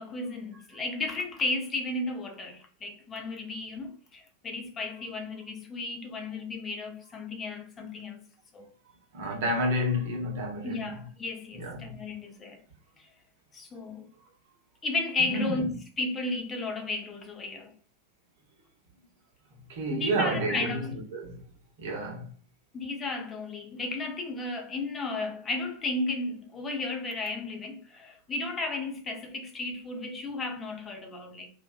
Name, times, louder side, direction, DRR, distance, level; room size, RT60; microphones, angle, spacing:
voice 1, 0.0-8.2 8.5-8.7 10.6-12.6 13.0-13.1 13.5-14.1 14.8-17.7 19.9-20.9 22.7-31.5, left 3 dB, 20° left, 0.5 m, -34 dB
voice 2, 9.1-11.0 11.5-11.9 15.3-15.7 19.7-21.4 21.8-22.3, equal, 55° right, 0.8 m, -30 dB
2.6 x 2.2 x 2.3 m
figure-of-eight pair, 90°, 0 cm